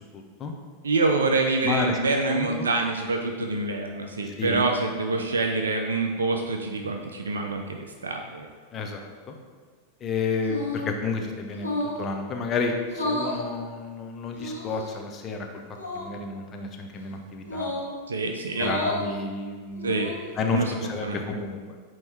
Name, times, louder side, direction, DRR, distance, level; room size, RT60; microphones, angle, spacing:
voice 1, 0.1-0.5 1.6-2.0 2.2-2.7 4.3-4.6 8.7-9.4 10.0-11.7 12.0-15.5 15.9-17.7 18.6-20.0 20.4-21.6, left 4 dB, 25° left, 3 dB, 0.8 m, -31 dB
voice 2, 0.8-8.5 18.1-18.8 19.8-20.1 20.5-20.8 21.0-21.2, right 3 dB, 70° right, 3 dB, 0.5 m, -26 dB
sound 1, 10.4-10.9 11.5-12.0 12.8-13.4 14.3-14.9 15.7-16.1 17.4-17.9 18.5-19.0 19.7-20.3, left 2 dB, 85° left, 1.5 m, -31 dB
8.7 x 3.2 x 4.4 m, 1.5 s
figure-of-eight pair, 90°, 0 cm